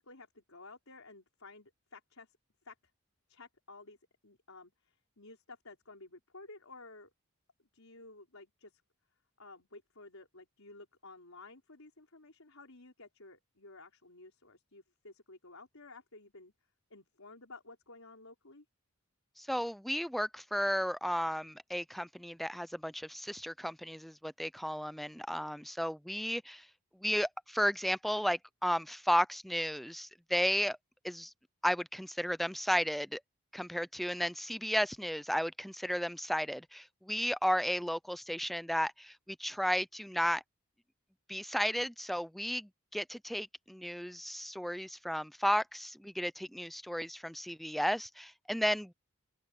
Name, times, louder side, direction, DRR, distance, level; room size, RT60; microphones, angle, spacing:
voice 1, 0.0-2.4 2.6-2.8 3.3-4.0 4.2-7.1 7.7-8.8 9.4-16.5 16.9-18.6, left 3 dB, 80° left, 4.5 m, -53 dB
voice 2, 19.4-26.7 27.0-30.8 31.0-31.3 31.6-33.2 33.5-40.4 41.3-48.9, equal, ahead, 0.3 m, -34 dB
open air
head